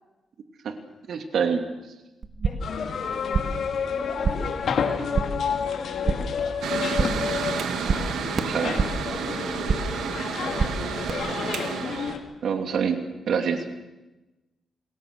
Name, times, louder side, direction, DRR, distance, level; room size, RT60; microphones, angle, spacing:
voice 1, 1.1-1.6 8.4-8.8 12.4-13.0 13.3-13.6, right 6 dB, 70° right, 6 dB, 2.8 m, -25 dB
sound 1, 2.2-2.8 3.0-3.7 4.0-4.6 4.9-5.5 5.8-6.4 6.7-7.3 7.6-9.1 9.4-10.0 10.3-11.1, right 4 dB, 50° right, 1.9 m, -28 dB
voice 2, 2.4-6.9 10.9-12.0, left 4 dB, 50° left, 1 dB, 7.7 m, -41 dB
sound 2, 2.6-12.2, left 6 dB, 70° left, 3.1 m, -30 dB
Mechanical fan, 6.6-12.1, right 7 dB, 85° right, 2.5 m, -31 dB
27.5 x 20.5 x 6.8 m, 1.0 s
cardioid pair, 90°, 0 cm